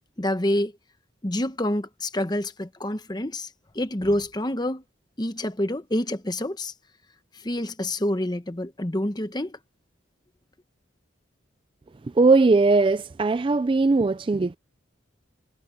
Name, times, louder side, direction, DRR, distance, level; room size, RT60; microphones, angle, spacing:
voice 1, 0.2-0.7 1.2-3.5 3.7-4.8 5.2-6.7 7.4-9.6, left 1 dB, 20° left, 1.0 m, -27 dB
voice 2, 12.0-14.6, right 3 dB, 25° right, 0.3 m, -19 dB
head